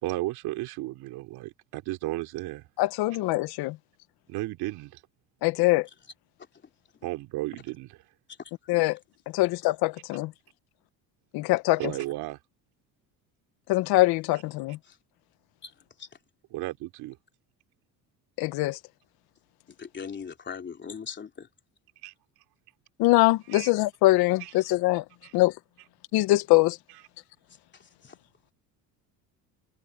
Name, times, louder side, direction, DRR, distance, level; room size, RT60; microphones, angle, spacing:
voice 1, 0.0-2.7 4.3-4.9 7.0-8.0 11.8-12.4 16.5-17.2 22.0-22.1 23.5-23.7 24.4-24.5 25.2-25.3, right 18 dB, 75° right, 3.1 m, -34 dB
voice 2, 2.8-3.8 5.4-5.9 8.7-9.0 9.3-10.3 11.3-11.9 13.7-14.8 18.4-18.8 23.0-25.0 25.3-25.5 26.1-26.8, left 19 dB, 75° left, 1.0 m, -23 dB
voice 3, 19.8-21.5 28.0-28.1, left 6 dB, 30° left, 3.2 m, -39 dB
cardioid pair, 115°, 38 cm